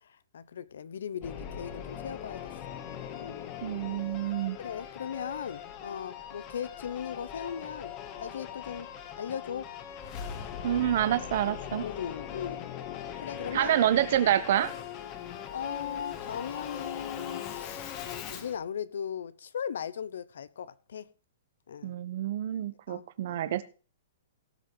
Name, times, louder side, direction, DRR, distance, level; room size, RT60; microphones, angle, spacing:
voice 1, 0.0-2.8 3.1-3.5 4.6-7.9 8.2-8.9 9.2-9.7 11.8-12.7 13.2-13.7 15.5-18.0 18.3-21.1 21.7-21.9 22.9-23.5, left 8 dB, 75° left, 0.9 m, -38 dB
Singing / Musical instrument, 1.2-18.6, left 9 dB, 30° left, 1.9 m, -40 dB
voice 2, 3.6-4.6 10.6-11.8 13.5-14.7 21.8-23.6, right 11 dB, 55° right, 1.2 m, -27 dB
18.0 x 6.1 x 4.8 m
hypercardioid pair, 155°, 0 cm